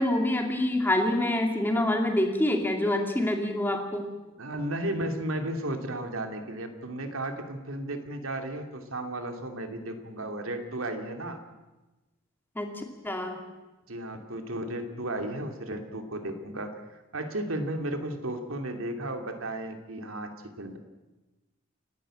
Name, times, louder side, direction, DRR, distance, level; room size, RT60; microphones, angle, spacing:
voice 1, 0.0-4.1 12.6-13.4, left 1 dB, 10° left, 3 dB, 2.5 m, -26 dB
voice 2, 4.4-11.4 13.9-16.7 17.1-20.8, right 1 dB, 85° right, 5 dB, 2.7 m, -34 dB
29.5 x 11.5 x 8.8 m, 1.1 s
head